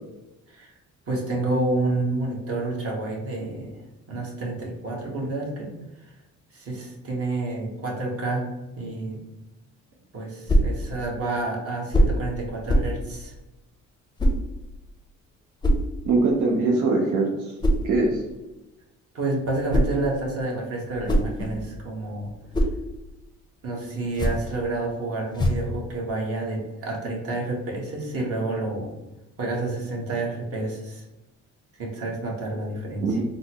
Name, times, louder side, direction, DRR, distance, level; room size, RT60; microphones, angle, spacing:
voice 1, 1.1-3.7 4.1-5.7 6.0-6.1 6.5-8.4 8.8-9.2 10.1-13.3 19.1-22.3 23.6-28.9 29.4-31.0 31.8-33.2, right 2 dB, 50° right, -2 dB, 1.2 m, -29 dB
sound 1, 10.5-10.8 11.9-12.2 12.7-13.0 14.2-14.4 15.6-15.9 17.6-17.9 19.4-20.0 20.8-21.8 22.2-22.8 24.0-24.5 25.3-25.7, equal, 15° left, 0.5 m, -22 dB
voice 2, 16.1-17.5 17.8-18.2 33.0-33.2, right 3 dB, 90° right, -1 dB, 0.6 m, -22 dB
3.9 x 2.0 x 2.9 m, 1.0 s
cardioid pair, 90°, 30 cm